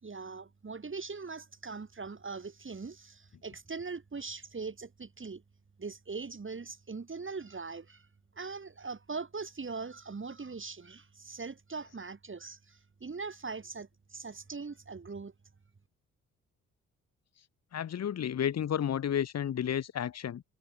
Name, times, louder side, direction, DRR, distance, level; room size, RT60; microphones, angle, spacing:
voice 1, 0.0-5.4 5.8-8.1 8.3-15.3, right 4 dB, 35° right, 5.5 m, -41 dB
voice 2, 17.7-20.4, left 9 dB, 45° left, 1.1 m, -31 dB
hypercardioid pair, 45°, 36 cm